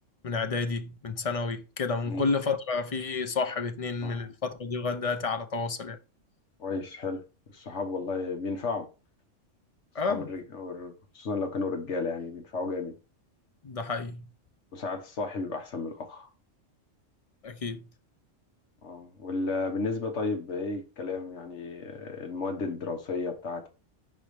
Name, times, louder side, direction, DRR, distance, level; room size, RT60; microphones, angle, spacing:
voice 1, 0.2-6.0 9.9-10.3 13.6-14.2 17.4-17.9, left 4 dB, 40° left, 0.6 m, -30 dB
voice 2, 6.6-7.2 7.5-8.9 10.0-13.0 14.7-16.3 18.8-23.7, left 3 dB, 65° left, 1.5 m, -33 dB
4.9 x 4.6 x 5.1 m
omnidirectional pair, 1.3 m